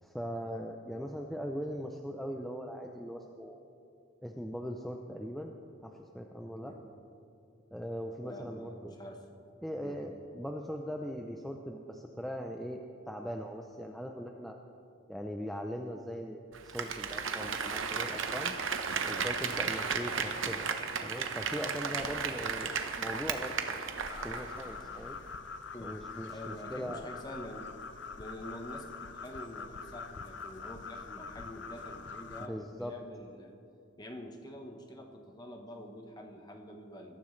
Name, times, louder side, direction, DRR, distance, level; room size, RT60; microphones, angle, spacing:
voice 1, 0.0-3.6 4.2-5.5 5.8-6.7 7.7-8.9 9.6-14.6 15.1-18.5 19.1-20.7 21.0-23.9 24.2-25.2 25.8-27.1 32.5-32.9, equal, ahead, 2 dB, 0.5 m, -40 dB
voice 2, 8.2-9.3 9.8-10.0 25.7-26.0 26.3-27.7 28.2-33.5 34.0-37.2, equal, 20° left, 3 dB, 1.1 m, -46 dB
Applause, 16.5-24.7 25.0-25.1, right 5 dB, 70° right, 1.0 m, -34 dB
sound 1, 24.0-32.5, left 5 dB, 55° left, 0.6 m, -44 dB
21.5 x 13.5 x 3.2 m, 2.6 s
head